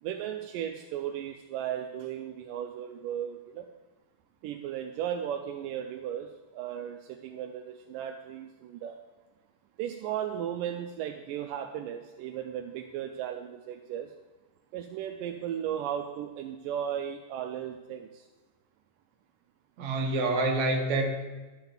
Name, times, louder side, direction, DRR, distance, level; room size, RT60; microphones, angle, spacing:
voice 1, 0.0-3.7 4.4-9.0 9.8-14.1 14.7-18.2 19.8-19.9, right 10 dB, 80° right, 5 dB, 2.0 m, -36 dB
voice 2, 19.8-21.1, right 2 dB, 55° right, 2 dB, 2.7 m, -27 dB
11.5 x 7.9 x 7.2 m, 1.2 s
omnidirectional pair, 4.4 m